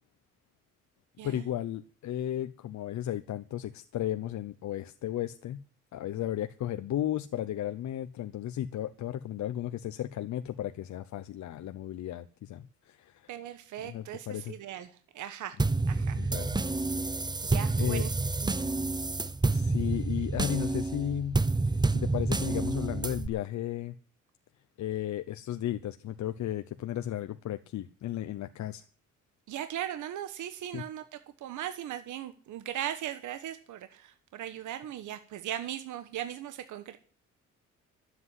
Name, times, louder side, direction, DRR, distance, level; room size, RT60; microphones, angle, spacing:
voice 1, 1.2-5.6 5.9-13.2 13.8-14.5 16.1-16.6 17.8-18.0 19.5-21.4 21.7-23.9 24.8-28.8 30.7-30.8, left 11 dB, 70° left, 10 dB, 0.9 m, -34 dB
voice 2, 13.3-15.6 15.9-16.3 17.4-18.1 18.4-18.6 29.5-37.0, right 11 dB, 80° right, 10 dB, 1.2 m, -38 dB
sound 1, 15.6-23.3, right 3 dB, 15° right, 0.8 m, -29 dB
12.5 x 8.0 x 9.6 m, 0.42 s
cardioid pair, 90°, 30 cm